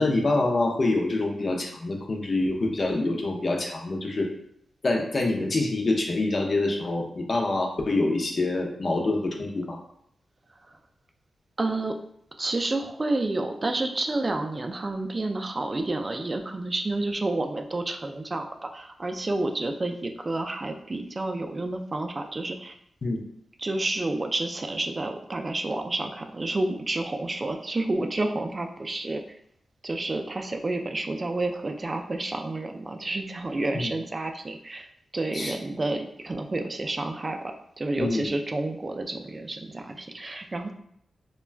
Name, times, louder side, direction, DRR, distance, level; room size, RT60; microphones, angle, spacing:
voice 1, 0.0-4.3 4.8-9.8 23.0-23.2 33.7-33.9 35.3-35.6 38.0-38.3, left 2 dB, 50° left, 1 dB, 0.5 m, -26 dB
voice 2, 11.6-12.0 12.4-22.7 23.6-29.2 29.8-34.9 35.1-40.7, right 2 dB, 30° right, 5 dB, 0.3 m, -30 dB
2.3 x 2.2 x 3.2 m, 0.71 s
cardioid pair, 85°, 0 cm